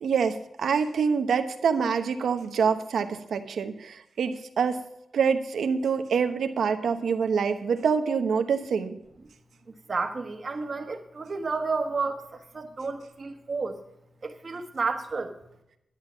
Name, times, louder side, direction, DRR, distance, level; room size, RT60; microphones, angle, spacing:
voice 1, 0.0-4.8 5.1-9.0, right 6 dB, 85° right, 7 dB, 1.0 m, -26 dB
voice 2, 9.9-12.2 12.5-13.8 14.2-15.3, right 4 dB, 35° right, 5 dB, 1.3 m, -31 dB
11.0 x 9.9 x 5.7 m, 0.83 s
wide cardioid pair, 165°, 0 cm